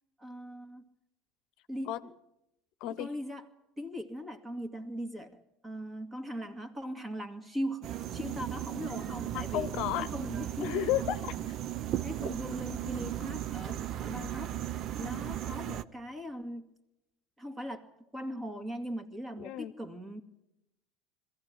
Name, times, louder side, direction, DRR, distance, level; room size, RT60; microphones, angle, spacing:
voice 1, 0.2-0.8 1.7-2.1 2.8-3.5 3.8-9.7 10.1-10.7 12.0-14.6 15.0-16.8 17.4-20.2, equal, 20° right, 9 dB, 2.3 m, -40 dB
voice 2, 2.8-3.1 9.3-10.1 10.6-11.6 19.4-19.7, left 14 dB, 65° left, 12 dB, 0.8 m, -33 dB
sound 1, 7.8-15.8, right 12 dB, 50° right, 0.7 m, -36 dB
22.0 x 15.0 x 9.6 m, 0.90 s
hypercardioid pair, 90°, 0 cm